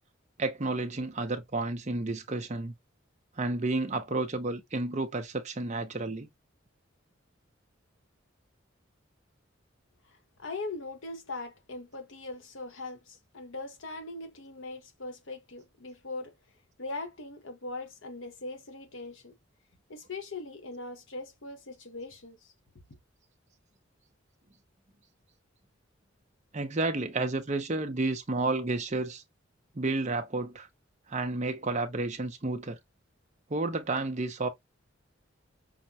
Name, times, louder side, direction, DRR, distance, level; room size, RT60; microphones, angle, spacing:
voice 1, 0.4-2.7 3.4-6.3 26.5-29.2 29.7-30.7 31.1-32.8 33.5-34.5, right 2 dB, 35° right, 0.8 m, -31 dB
voice 2, 10.0-16.3 16.8-19.4 19.9-22.5, left 2 dB, 80° left, 1.2 m, -40 dB
5.7 x 2.2 x 2.8 m
head